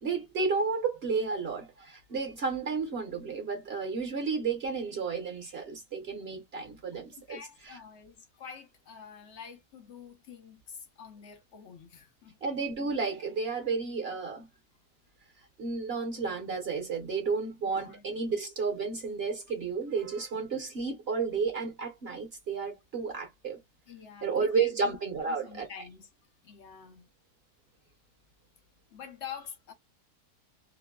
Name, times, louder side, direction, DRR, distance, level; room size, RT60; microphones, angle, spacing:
voice 1, 0.0-7.4 7.6-7.8 12.4-14.5 15.6-23.6 24.2-25.7, right 4 dB, 50° right, 0.8 m, -32 dB
voice 2, 6.9-12.4 17.6-18.1 23.9-26.1 26.4-27.1 28.9-29.7, left 7 dB, 60° left, 0.7 m, -47 dB
3.0 x 2.2 x 2.2 m
omnidirectional pair, 1.8 m